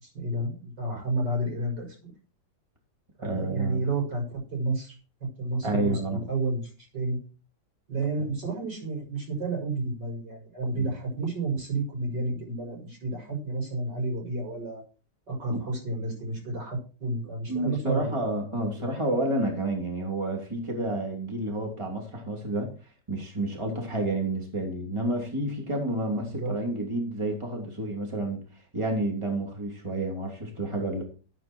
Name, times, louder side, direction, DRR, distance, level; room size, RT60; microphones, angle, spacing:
voice 1, 0.0-2.1 3.2-5.0 5.4-7.2 7.9-14.8 15.3-18.2 26.3-26.5, right 2 dB, 90° right, 0 dB, 7.2 m, -31 dB
voice 2, 3.2-3.8 5.6-6.2 10.8-10.9 15.5-15.6 17.5-22.7 23.1-28.4 28.7-31.0, right 1 dB, 15° right, 1 dB, 3.2 m, -30 dB
14.0 x 8.5 x 4.6 m, 0.36 s
omnidirectional pair, 1.8 m